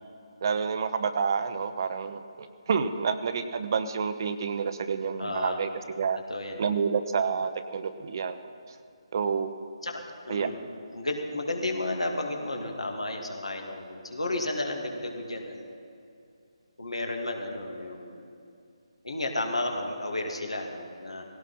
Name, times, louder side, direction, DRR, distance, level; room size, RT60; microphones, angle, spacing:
voice 1, 0.4-2.2 2.7-5.7 6.0-6.2 6.6-8.4 9.1-9.5 10.3-10.7, right 6 dB, 45° right, 10 dB, 0.9 m, -28 dB
voice 2, 5.2-5.6 6.3-6.6 9.8-10.6 10.9-15.7 16.8-18.3 19.0-21.2, left 2 dB, 80° left, 2 dB, 2.6 m, -32 dB
18.0 x 17.0 x 4.3 m, 2.5 s
figure-of-eight pair, 150°, 3 cm